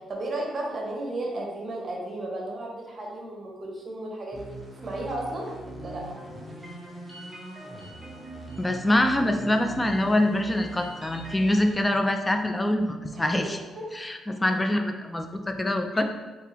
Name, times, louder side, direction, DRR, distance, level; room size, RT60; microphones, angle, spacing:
voice 1, 0.0-4.6 4.8-5.5 5.8-6.2 13.1-13.5 13.8-13.9 14.5-14.6, right 1 dB, 40° right, -1 dB, 1.0 m, -34 dB
sound 1, 4.3-11.7, right 1 dB, 5° right, 0.9 m, -41 dB
voice 2, 8.6-13.6 13.9-16.0, left 1 dB, 15° left, 5 dB, 0.3 m, -25 dB
3.6 x 2.8 x 2.8 m, 1.2 s
cardioid pair, 90°, 0 cm